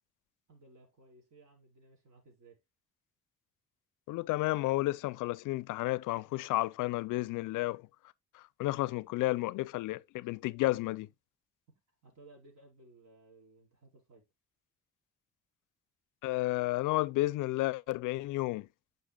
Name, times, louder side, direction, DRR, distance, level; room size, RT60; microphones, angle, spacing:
voice 1, 0.5-2.6 8.9-9.4 12.0-14.3, right 2 dB, 65° right, 4.8 m, -59 dB
voice 2, 4.1-7.8 8.3-11.1 16.2-18.7, left 18 dB, 85° left, 0.5 m, -32 dB
10.0 x 5.8 x 2.2 m
cardioid pair, 90°, 30 cm